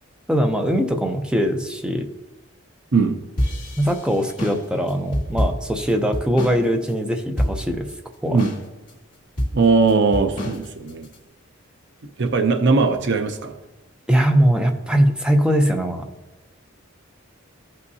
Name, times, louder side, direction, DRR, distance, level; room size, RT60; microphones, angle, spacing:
voice 1, 0.3-2.1 3.8-7.9 8.2-8.4 14.1-16.1, equal, 5° right, 4 dB, 0.6 m, -21 dB
sound 1, 3.4-6.6 6.9-7.0 7.4-7.9 8.4-8.9 9.4-11.2, equal, 40° left, 2.1 m, -26 dB
voice 2, 9.5-11.1 12.2-13.5, right 4 dB, 55° right, 5 dB, 0.6 m, -19 dB
15.0 x 5.4 x 2.7 m, 1.1 s
head